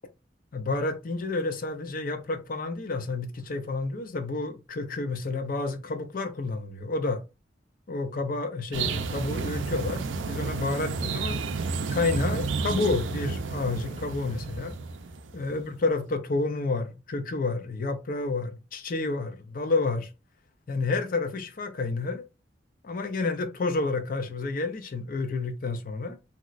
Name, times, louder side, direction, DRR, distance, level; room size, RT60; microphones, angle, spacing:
voice 1, 0.5-7.2 7.9-11.4 11.9-14.8 15.3-20.1 20.7-22.3 22.8-26.2, left 3 dB, 50° left, 0.5 m, -30 dB
sound 1, 8.7-15.6, right 4 dB, 80° right, 0.4 m, -31 dB
3.0 x 2.8 x 2.4 m
head